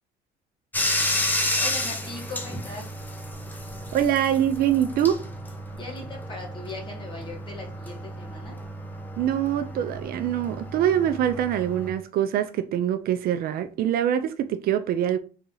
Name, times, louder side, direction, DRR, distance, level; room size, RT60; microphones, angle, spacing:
Bathtub (filling or washing), 0.7-11.9, left 1 dB, 10° left, 0.8 m, -32 dB
voice 1, 1.6-2.9 5.8-8.6, left 2 dB, 30° left, 2.0 m, -39 dB
voice 2, 3.9-5.2 9.2-15.2, right 10 dB, 65° right, 0.5 m, -24 dB
4.0 x 2.9 x 3.8 m
cardioid pair, 110°, 17 cm